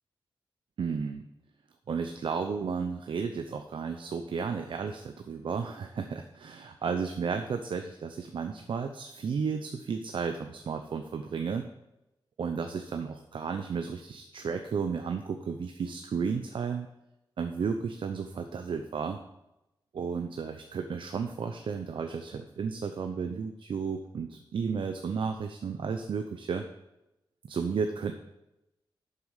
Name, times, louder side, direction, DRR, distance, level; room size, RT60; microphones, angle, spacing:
voice 1, 0.8-1.2 1.9-11.7 12.4-16.9 17.4-19.2 19.9-26.6 27.5-28.1, right 5 dB, 75° right, 6 dB, 0.7 m, -33 dB
11.5 x 6.9 x 5.0 m, 0.91 s
wide cardioid pair, 125°, 9 cm